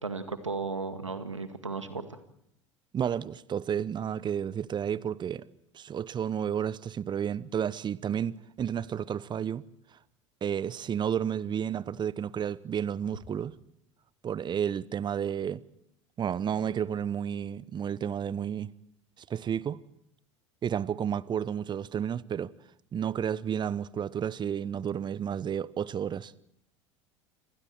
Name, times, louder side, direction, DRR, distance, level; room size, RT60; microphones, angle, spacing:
voice 1, 0.0-2.2, right 4 dB, 90° right, 1.9 m, -35 dB
voice 2, 2.9-5.5 5.7-9.6 10.4-13.5 14.2-15.6 16.2-18.7 19.3-19.8 20.6-22.5 22.9-26.3, right 8 dB, 30° right, 0.9 m, -31 dB
29.5 x 26.5 x 4.6 m
figure-of-eight pair, 75°, 15 cm